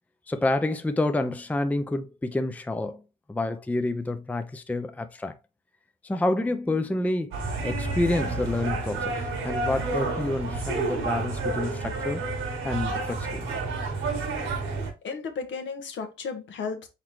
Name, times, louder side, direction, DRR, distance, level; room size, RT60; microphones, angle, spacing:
voice 1, 0.3-3.0 3.3-5.3 6.0-7.3 7.6-9.2 9.4-12.2 12.5-13.5, left 2 dB, 10° left, 0.5 m, -28 dB
sound 1, 7.3-14.9, right 3 dB, 85° right, 1.7 m, -30 dB
voice 2, 15.0-16.9, left 5 dB, 70° left, 1.2 m, -34 dB
4.2 x 4.1 x 3.1 m
cardioid pair, 90°, 20 cm